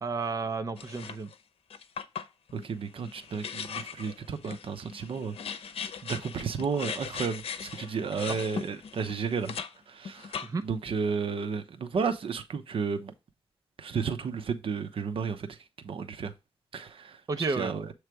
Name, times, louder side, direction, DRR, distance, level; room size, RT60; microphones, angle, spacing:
voice 1, 0.0-1.3 8.3-8.4 10.4-10.6 17.3-17.7, right 4 dB, 35° right, 0.7 m, -32 dB
sound 1, 0.8-1.3 1.7-9.7 10.0-10.8, left 7 dB, 75° left, 0.8 m, -39 dB
voice 2, 2.5-5.3 6.0-9.5 9.9-10.3 10.6-13.1 13.8-15.5 15.8-16.3 16.7-17.1 17.6-17.9, right 5 dB, 65° right, 0.9 m, -32 dB
7.8 x 3.2 x 4.7 m
wide cardioid pair, 120°, 10 cm